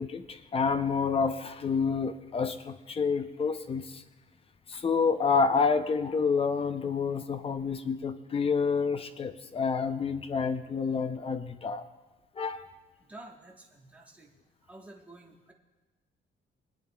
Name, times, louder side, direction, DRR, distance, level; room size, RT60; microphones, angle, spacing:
voice 1, 0.0-4.0 4.7-11.8 12.4-12.7, left 5 dB, 30° left, 10 dB, 0.5 m, -28 dB
voice 2, 13.0-14.3 14.6-15.5, right 2 dB, 5° right, -2 dB, 1.2 m, -50 dB
23.0 x 9.1 x 2.3 m, 1.2 s
cardioid pair, 165°, 21 cm